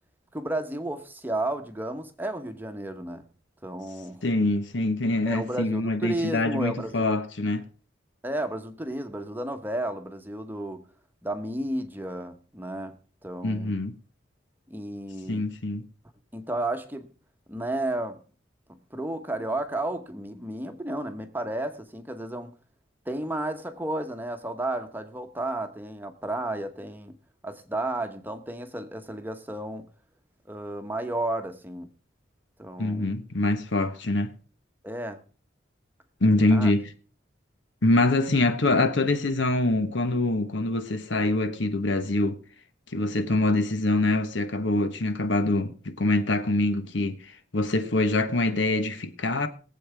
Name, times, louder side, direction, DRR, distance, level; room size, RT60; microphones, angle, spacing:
voice 1, 0.3-3.2 3.6-4.2 5.2-7.2 8.2-10.8 11.2-13.8 14.7-15.5 16.3-17.1 17.5-18.2 18.9-22.5 23.1-27.1 27.4-29.9 30.5-31.9 32.6-33.2 34.8-35.2 36.5-36.7, right 1 dB, 10° right, 1.0 m, -32 dB
voice 2, 4.2-7.6 13.4-14.0 15.3-15.9 32.8-34.3 36.2-36.9 37.8-42.4 42.9-49.5, left 2 dB, 70° left, 1.2 m, -24 dB
22.0 x 7.8 x 3.4 m
head